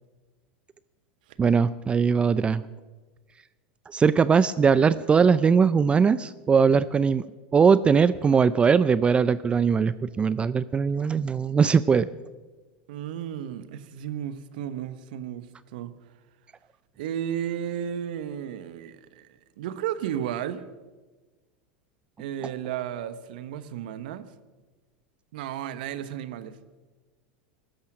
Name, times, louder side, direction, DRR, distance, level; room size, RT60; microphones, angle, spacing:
voice 1, 1.4-2.6 3.9-7.2 7.5-12.1, right 6 dB, 20° right, 16 dB, 0.4 m, -20 dB
voice 2, 12.9-15.9 17.0-19.3 19.6-20.6 22.2-24.3 25.3-26.6, right 10 dB, 70° right, 13 dB, 1.1 m, -33 dB
16.0 x 13.0 x 6.0 m, 1.3 s
hypercardioid pair, 100°, 5 cm